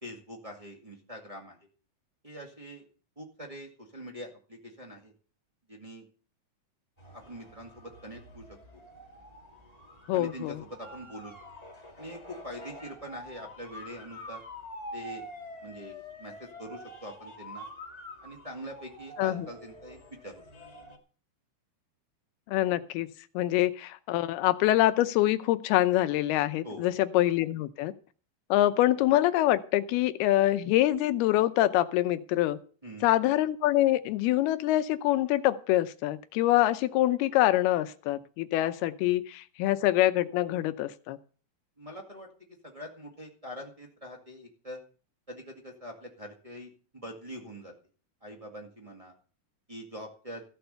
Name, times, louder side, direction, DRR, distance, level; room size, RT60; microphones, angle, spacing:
voice 1, 0.0-1.7 2.2-2.8 3.1-5.1 5.7-6.1 7.1-8.6 10.1-11.3 12.0-14.4 14.9-15.2 15.6-17.6 18.2-20.0 20.2-20.4 26.6-27.0 32.8-33.1 41.8-42.3 42.6-44.8 45.3-47.7 48.2-49.1 49.7-50.4, equal, 60° right, -1 dB, 0.3 m, -44 dB
sound 1, 7.0-21.0, equal, 15° left, 1.5 m, -47 dB
voice 2, 10.1-10.6 19.2-19.5 22.5-23.1 23.3-27.9 28.5-32.6 33.0-41.2, left 15 dB, 90° left, 12 dB, 2.7 m, -25 dB
15.0 x 6.9 x 6.8 m, 0.39 s
omnidirectional pair, 4.4 m